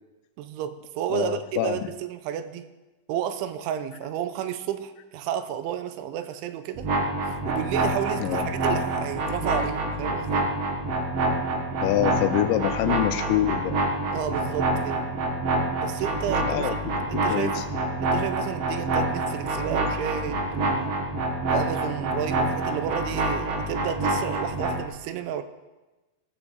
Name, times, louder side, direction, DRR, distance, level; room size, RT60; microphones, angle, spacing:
voice 1, 0.4-2.7 3.1-6.9 7.2-10.5 14.1-15.1 15.8-21.0 21.5-25.4, right 10 dB, 85° right, 10 dB, 3.1 m, -32 dB
voice 2, 1.1-1.8 8.2-8.5 11.8-13.8 16.4-16.8 17.1-17.6, left 13 dB, 80° left, 9 dB, 2.8 m, -25 dB
sound 1, 6.8-24.8, right 2 dB, 65° right, 1.5 m, -27 dB
17.5 x 7.2 x 7.2 m, 1.1 s
omnidirectional pair, 5.5 m